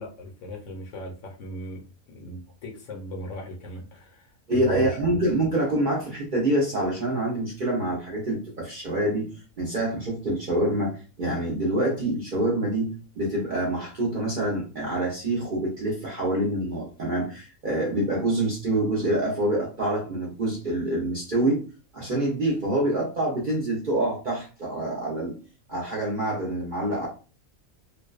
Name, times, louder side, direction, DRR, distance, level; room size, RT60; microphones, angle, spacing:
voice 1, 0.0-5.2, left 1 dB, 65° left, 1 dB, 1.0 m, -38 dB
voice 2, 4.5-12.9 13.2-21.6 21.9-25.4 25.7-27.1, right 1 dB, 50° right, -4 dB, 0.6 m, -26 dB
2.5 x 2.1 x 2.3 m, 0.36 s
omnidirectional pair, 1.5 m